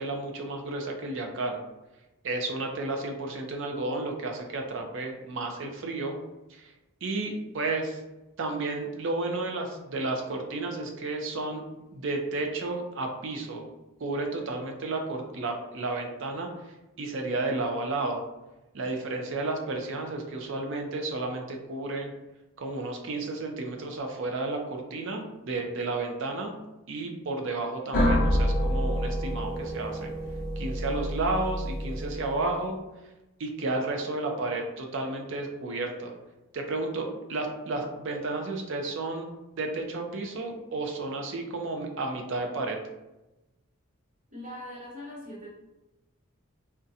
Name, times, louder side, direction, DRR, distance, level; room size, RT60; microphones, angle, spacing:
voice 1, 0.0-1.6 2.2-6.2 6.5-6.7 7.0-8.0 8.4-11.7 11.9-13.7 14.0-16.5 17.0-18.2 18.7-22.1 22.6-26.5 26.9-30.1 30.6-32.8 33.4-36.1 36.5-39.3 39.6-42.8, right 2 dB, 60° right, 3 dB, 0.5 m, -32 dB
sound 1, 27.9-32.6, equal, 40° left, 0.5 m, -28 dB
voice 2, 44.3-45.5, left 1 dB, 35° right, -4 dB, 0.8 m, -41 dB
3.6 x 2.2 x 2.7 m, 1.0 s
head